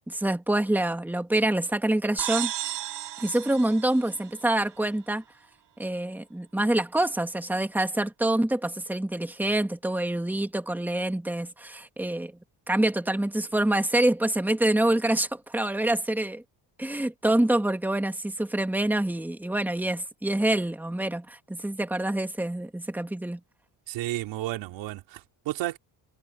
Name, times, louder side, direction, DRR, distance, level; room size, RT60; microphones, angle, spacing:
voice 1, 0.1-2.5 3.2-5.2 5.8-12.3 12.7-16.4 16.8-23.4, right 1 dB, 5° right, 1.9 m, -26 dB
sound 1, 2.2-4.8, right 13 dB, 70° right, 3.2 m, -34 dB
voice 2, 23.9-25.8, right 16 dB, 90° right, 3.6 m, -32 dB
cardioid pair, 105°, 42 cm